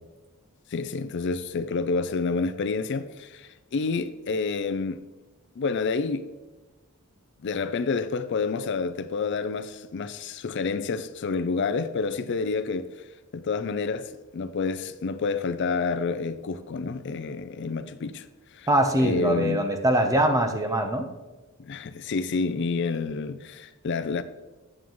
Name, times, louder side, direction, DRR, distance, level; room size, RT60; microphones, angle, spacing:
voice 1, 0.7-5.0 5.6-6.2 7.4-13.1 13.3-18.3 18.5-18.7 19.0-19.6 21.6-24.2, left 4 dB, 55° left, 0.4 m, -29 dB
voice 2, 18.7-21.1, right 1 dB, 15° right, 0.8 m, -23 dB
9.3 x 7.4 x 3.1 m
head